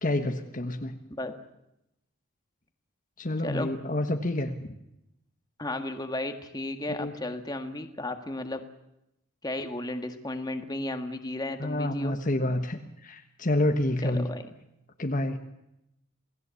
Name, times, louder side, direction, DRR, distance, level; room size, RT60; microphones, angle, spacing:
voice 1, 0.0-1.0 3.2-4.7 6.9-7.1 11.6-14.3 15.0-15.4, left 1 dB, 40° left, 5 dB, 1.4 m, -28 dB
voice 2, 5.6-8.6 9.4-12.1 14.0-14.4, left 1 dB, 20° left, 6 dB, 1.7 m, -34 dB
28.0 x 18.5 x 8.4 m, 0.86 s
head